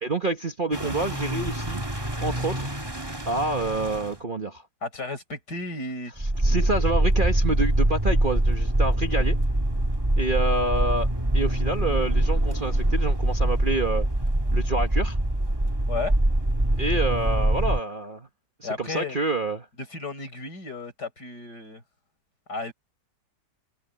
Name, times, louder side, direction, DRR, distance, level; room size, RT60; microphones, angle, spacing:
voice 1, 0.0-1.8 2.2-2.7 3.3-4.6 6.4-9.4 10.2-11.1 11.3-14.1 14.5-15.2 16.8-18.3 18.6-19.7, right 2 dB, 35° right, 1.2 m, -27 dB
sound 1, 0.7-4.2 6.2-17.8, right 1 dB, 15° right, 2.2 m, -24 dB
voice 2, 4.8-6.1 9.2-9.3 15.9-16.1 18.6-19.2 19.9-21.8 22.5-22.7, left 3 dB, 65° left, 6.7 m, -33 dB
omnidirectional pair, 1.9 m